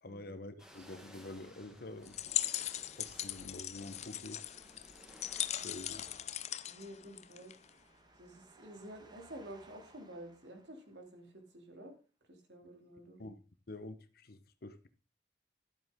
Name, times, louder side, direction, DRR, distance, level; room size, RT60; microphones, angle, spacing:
voice 1, 0.0-2.4 2.9-4.5 5.4-6.0 13.2-13.4 13.7-14.9, left 2 dB, 55° left, 0.9 m, -47 dB
sound 1, 0.6-6.2, equal, 5° right, 1.4 m, -58 dB
sound 2, 2.1-7.7, left 12 dB, 40° left, 0.5 m, -39 dB
sound 3, 5.3-11.4, right 2 dB, 25° right, 1.2 m, -64 dB
voice 2, 5.5-5.9 6.7-7.5 8.2-11.9 12.3-13.2, right 1 dB, 70° right, 2.6 m, -51 dB
12.0 x 8.0 x 3.6 m
head